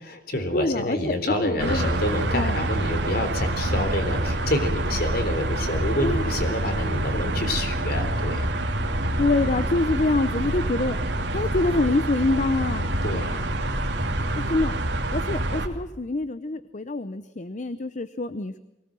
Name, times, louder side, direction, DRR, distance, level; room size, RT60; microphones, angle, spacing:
voice 1, 0.0-8.5 13.0-13.4, left 1 dB, 55° left, 7 dB, 3.8 m, -28 dB
voice 2, 0.5-1.9 2.3-2.7 6.0-6.3 9.2-11.0 11.3-12.9 13.8-14.0 14.4-14.7 15.1-18.6, left 2 dB, 40° left, 13 dB, 0.8 m, -25 dB
sound 1, 1.6-15.7, right 1 dB, 75° right, 2.8 m, -26 dB
23.5 x 18.5 x 7.6 m, 0.92 s
head